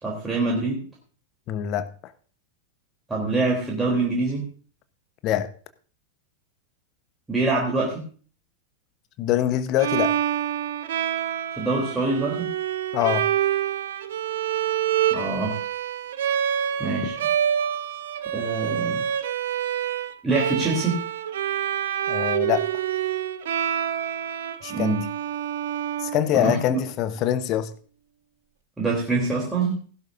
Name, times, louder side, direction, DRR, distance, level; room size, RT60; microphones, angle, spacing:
voice 1, 0.0-0.8 3.1-4.5 7.3-8.0 11.6-12.5 15.1-15.6 16.8-17.2 18.3-19.0 20.2-21.0 24.7-25.0 26.3-26.8 28.8-29.8, right 3 dB, 10° right, -3 dB, 3.3 m, -25 dB
voice 2, 1.5-2.1 5.2-5.5 9.2-10.2 12.9-13.3 22.1-22.7 24.6-25.0 26.0-27.7, left 11 dB, 40° left, 12 dB, 1.0 m, -24 dB
Bowed string instrument, 9.8-26.7, right 10 dB, 60° right, 0.9 m, -27 dB
16.5 x 11.5 x 2.6 m, 0.41 s
figure-of-eight pair, 90°, 0 cm